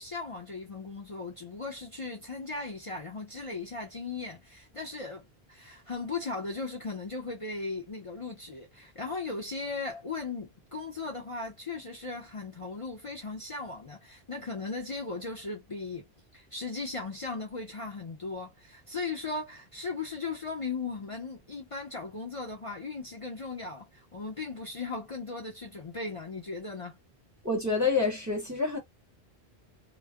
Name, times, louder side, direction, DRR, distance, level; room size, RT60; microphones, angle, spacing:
voice 1, 0.0-16.0 16.3-27.0, left 3 dB, 35° left, 0.7 m, -37 dB
voice 2, 27.4-28.8, left 4 dB, 20° right, 0.9 m, -27 dB
2.3 x 2.0 x 3.5 m
omnidirectional pair, 1.0 m